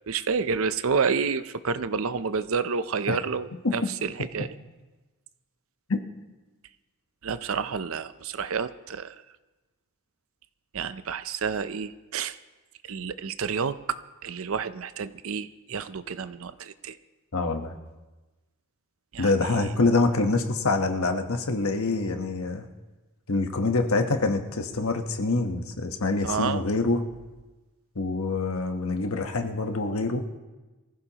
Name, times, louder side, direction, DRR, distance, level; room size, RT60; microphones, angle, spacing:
voice 1, 0.1-4.5 7.2-9.2 10.7-12.4 12.8-17.0 19.1-19.3 26.2-26.6, right 5 dB, 65° right, 13 dB, 0.6 m, -29 dB
voice 2, 17.3-17.7 19.2-22.7 23.3-27.0 27.9-30.3, left 3 dB, 70° left, 6 dB, 1.2 m, -25 dB
24.0 x 15.0 x 3.0 m, 1.2 s
head